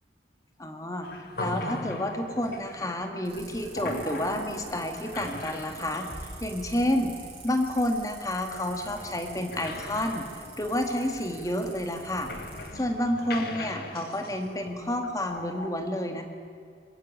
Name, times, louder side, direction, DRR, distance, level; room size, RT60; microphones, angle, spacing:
voice 1, 0.6-1.1 1.4-6.1 6.4-7.1 7.4-10.3 10.6-12.3 12.7-16.2, left 1 dB, 20° left, 5 dB, 1.8 m, -29 dB
sound 1, 1.0-15.7, left 2 dB, 60° left, 2.0 m, -40 dB
sound 2, 3.3-12.7, right 3 dB, 35° right, 6.8 m, -46 dB
21.5 x 16.0 x 8.7 m, 2.3 s
head